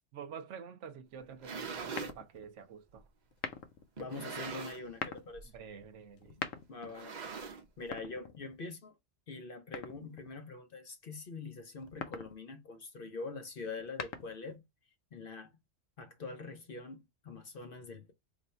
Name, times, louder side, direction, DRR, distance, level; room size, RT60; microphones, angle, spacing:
voice 1, 0.1-3.0 5.5-6.4, right 7 dB, 70° right, 0.9 m, -48 dB
sound 1, 1.2-2.2 3.0-3.1 4.0-5.0 5.3-5.6 5.8-5.9 6.8-7.9, right 5 dB, 45° right, 0.6 m, -42 dB
sound 2, 2.0-2.5 3.3-3.9 4.8-5.3 6.2-6.9 7.8-8.7 9.7-10.3 11.8-12.4 13.7-14.5, left 6 dB, 85° left, 1.0 m, -43 dB
voice 2, 4.0-5.5 6.7-7.2 7.8-8.9 9.3-14.6 15.1-15.5 16.0-18.1, left 3 dB, 55° left, 0.7 m, -44 dB
3.2 x 2.6 x 4.2 m
omnidirectional pair, 1.3 m